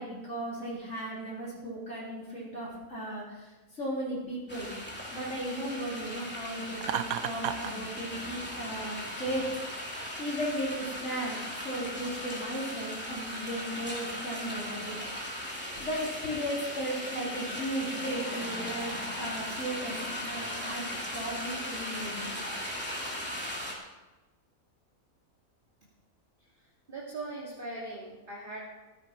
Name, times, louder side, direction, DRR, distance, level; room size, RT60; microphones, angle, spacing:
voice 1, 0.0-4.7 5.1-9.5 10.2-15.0 15.8-22.4, equal, 55° left, -6 dB, 4.3 m, -36 dB
sound 1, 4.5-23.7, equal, 5° left, 3.0 m, -38 dB
Laughter, 6.8-7.7, right 9 dB, 80° right, 1.1 m, -32 dB
voice 2, 26.9-28.6, right 2 dB, 35° right, -5 dB, 2.5 m, -40 dB
15.5 x 14.0 x 4.5 m, 1.2 s
omnidirectional pair, 1.5 m